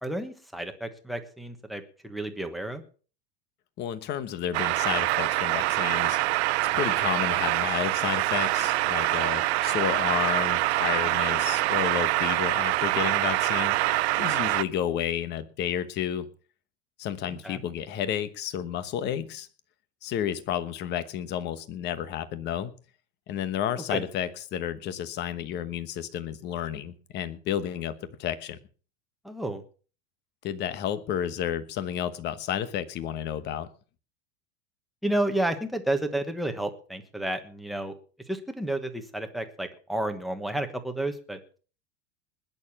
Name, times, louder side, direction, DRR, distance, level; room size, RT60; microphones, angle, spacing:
voice 1, 0.0-2.8 10.9-11.1 17.3-17.6 23.9-24.0 29.2-29.6 35.0-37.9 38.3-41.4, right 1 dB, ahead, 5 dB, 1.3 m, -31 dB
voice 2, 3.8-6.2 6.7-13.8 14.2-16.3 17.0-19.5 20.0-22.7 23.3-27.9 28.2-28.6 30.4-33.7, left 10 dB, 30° left, 13 dB, 1.2 m, -31 dB
sound 1, 4.5-14.6, right 18 dB, 65° right, 0.7 m, -25 dB
20.0 x 7.0 x 5.9 m, 0.39 s
supercardioid pair, 160°, 35 cm